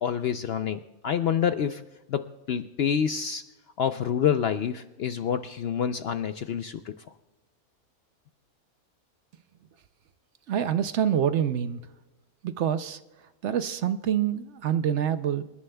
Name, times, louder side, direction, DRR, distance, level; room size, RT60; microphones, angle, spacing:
voice 1, 0.0-1.8 2.1-3.4 3.8-7.0, left 8 dB, 75° left, 10 dB, 0.5 m, -27 dB
voice 2, 10.5-11.8 12.4-13.0 13.4-15.4, right 9 dB, 65° right, 11 dB, 0.8 m, -26 dB
27.5 x 11.5 x 2.2 m, 1.1 s
omnidirectional pair, 1.5 m